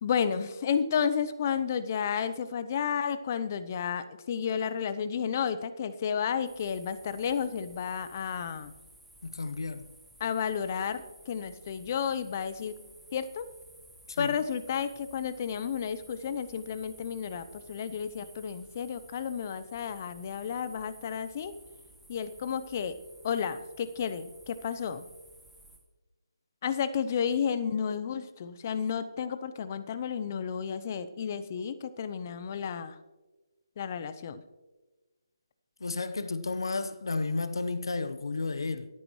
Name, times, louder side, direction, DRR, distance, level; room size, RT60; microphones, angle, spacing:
voice 1, 0.0-8.7 10.2-12.7 13.1-13.5 14.2-21.5 22.1-23.0 23.2-25.0 26.6-32.9 33.8-34.4, left 7 dB, 35° left, 0.7 m, -32 dB
sound 1, 6.4-25.8, right 1 dB, ahead, 1.2 m, -55 dB
voice 2, 9.2-9.8 14.1-14.4 35.8-38.9, left 3 dB, 65° left, 0.9 m, -32 dB
24.5 x 8.9 x 3.2 m
figure-of-eight pair, 155°, 2 cm